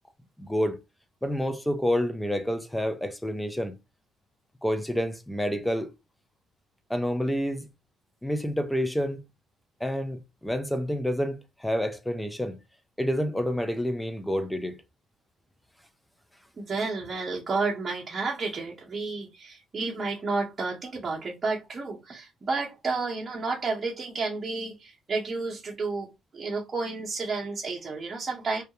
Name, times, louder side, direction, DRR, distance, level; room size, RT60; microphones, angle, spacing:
voice 1, 0.4-0.8 1.2-3.7 4.6-5.9 6.9-7.7 8.2-9.2 9.8-12.6 13.0-14.8, equal, 5° left, 0.5 m, -28 dB
voice 2, 16.6-26.1 26.3-28.6, right 3 dB, 35° right, 0.8 m, -31 dB
2.3 x 2.0 x 2.9 m
supercardioid pair, 65°, 0 cm